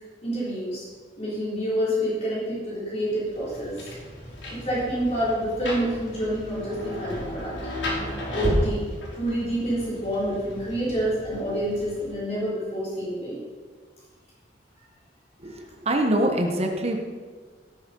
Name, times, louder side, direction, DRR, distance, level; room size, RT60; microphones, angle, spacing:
voice 1, 0.2-0.9 1.2-3.8 4.5-7.5 8.3-8.9 9.1-13.4, equal, 35° left, -8 dB, 4.2 m, -28 dB
Rain, 3.2-12.3, equal, 80° left, 4.2 m, -33 dB
voice 2, 15.9-17.0, right 1 dB, 35° right, 3 dB, 1.2 m, -23 dB
18.0 x 7.2 x 5.4 m, 1.5 s
head